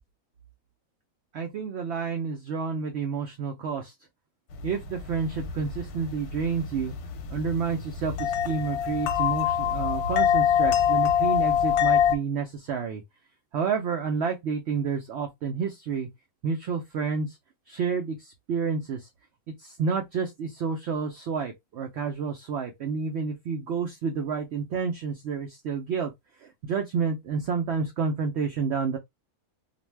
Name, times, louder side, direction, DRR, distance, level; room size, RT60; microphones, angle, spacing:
voice 1, 1.3-3.9 4.6-6.9 7.3-13.0 13.5-16.1 16.4-17.4 17.7-19.1 19.6-26.1 26.6-29.0, right 5 dB, 65° right, 0.6 m, -29 dB
sound 1, 4.5-12.2, left 9 dB, 85° left, 1.1 m, -25 dB
2.5 x 2.2 x 3.1 m
omnidirectional pair, 1.6 m